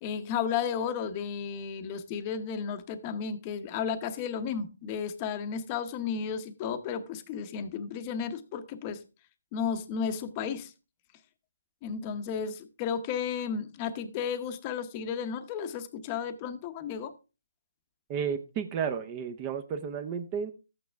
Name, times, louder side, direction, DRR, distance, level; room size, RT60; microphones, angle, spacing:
voice 1, 0.0-9.0 9.5-10.7 11.8-17.1, left 7 dB, 25° left, 0.9 m, -33 dB
voice 2, 18.1-20.5, right 7 dB, 20° right, 0.7 m, -32 dB
13.0 x 8.7 x 3.4 m
hypercardioid pair, 160°, 0 cm